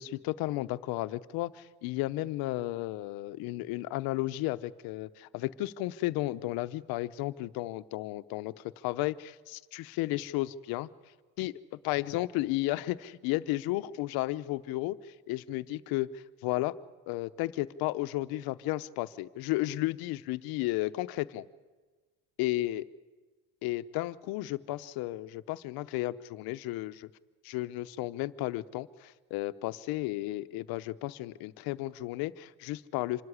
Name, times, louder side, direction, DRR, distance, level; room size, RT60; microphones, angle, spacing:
voice 1, 0.0-8.5 8.8-10.9 11.4-11.5 11.8-15.0 15.3-16.7 17.1-21.4 22.4-22.8 23.6-27.1 27.4-33.2, left 17 dB, 80° left, 13 dB, 0.8 m, -33 dB
26.0 x 13.0 x 9.8 m, 1.3 s
cardioid pair, 170°, 36 cm